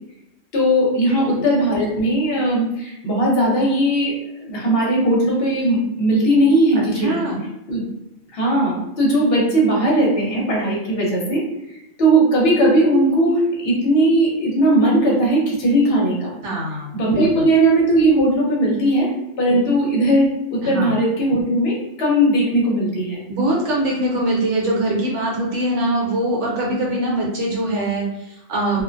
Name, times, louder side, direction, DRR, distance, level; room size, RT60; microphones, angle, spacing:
voice 1, 0.5-4.1 4.4-7.2 7.7-7.9 8.3-11.4 12.0-16.3 16.9-19.1 19.4-23.2, right 1 dB, 55° left, -3 dB, 0.9 m, -18 dB
voice 2, 1.1-1.4 6.9-7.4 16.4-17.5 19.5-19.6 20.6-20.9 23.3-28.8, right 1 dB, 65° right, -3 dB, 1.0 m, -23 dB
2.5 x 2.1 x 2.5 m, 0.92 s
omnidirectional pair, 1.4 m